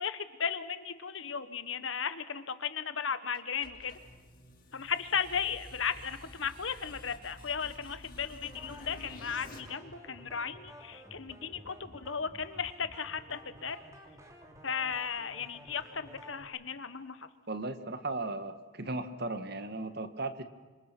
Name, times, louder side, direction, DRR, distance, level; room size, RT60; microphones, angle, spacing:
voice 1, 0.0-4.0 4.7-13.8 14.6-17.3, left 6 dB, 65° left, 12 dB, 1.3 m, -35 dB
sound 1, 3.3-9.6, left 1 dB, 45° left, 6.2 m, -51 dB
sound 2, 8.4-16.4, equal, 15° right, 2.8 m, -52 dB
voice 2, 17.5-20.4, right 2 dB, 50° right, 9 dB, 1.6 m, -36 dB
29.0 x 26.5 x 6.1 m, 1.4 s
head